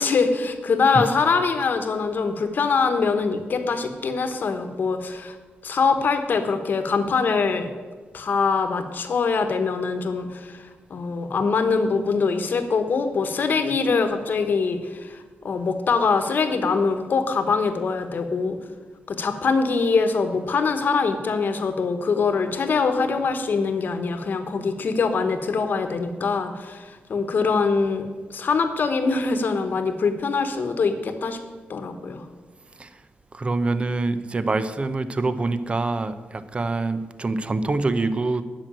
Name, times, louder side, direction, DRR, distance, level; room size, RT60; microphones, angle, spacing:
voice 1, 0.0-5.4 5.6-7.7 8.1-10.6 10.9-15.2 15.4-18.6 19.1-31.4 31.7-32.2, left 4 dB, 55° left, 8 dB, 1.2 m, -23 dB
voice 2, 33.3-38.4, right 3 dB, 30° right, 12 dB, 0.7 m, -25 dB
10.5 x 6.2 x 8.9 m, 1.4 s
cardioid pair, 110°, 4 cm